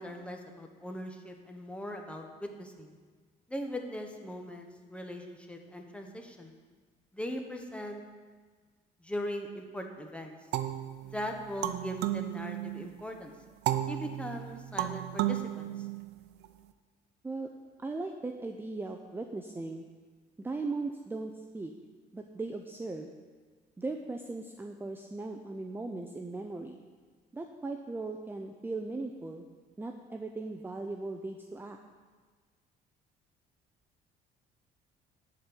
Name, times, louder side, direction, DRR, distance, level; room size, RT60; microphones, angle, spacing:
voice 1, 0.0-2.9 3.5-6.5 7.1-8.0 9.0-10.4 11.0-13.3 13.9-15.9, equal, 5° left, 3 dB, 1.1 m, -40 dB
sound 1, 10.5-13.0 13.7-16.5, right 13 dB, 80° right, 0.6 m, -34 dB
voice 2, 17.8-19.8 20.4-21.7 22.1-23.1 23.8-26.8 27.3-29.5 29.8-31.8, right 3 dB, 10° right, 4 dB, 0.5 m, -38 dB
10.5 x 4.4 x 7.9 m, 1.5 s
cardioid pair, 110°, 17 cm